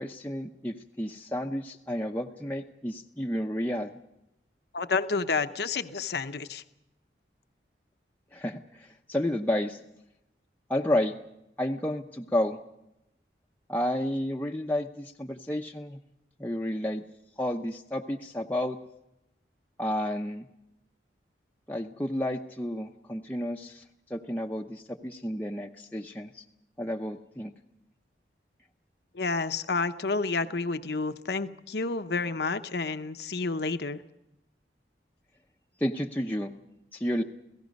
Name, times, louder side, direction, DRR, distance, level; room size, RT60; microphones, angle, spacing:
voice 1, 0.0-3.9 8.3-9.8 10.7-11.2 11.6-12.6 13.7-16.0 16.4-17.0 17.4-18.8 19.8-20.5 21.7-23.8 24.1-26.4 26.8-27.5 35.8-36.5 36.9-37.2, left 1 dB, 10° left, 0 dB, 0.7 m, -31 dB
voice 2, 4.7-6.6 29.1-34.0, left 4 dB, 70° left, 9 dB, 0.8 m, -30 dB
29.0 x 17.0 x 5.3 m, 0.87 s
head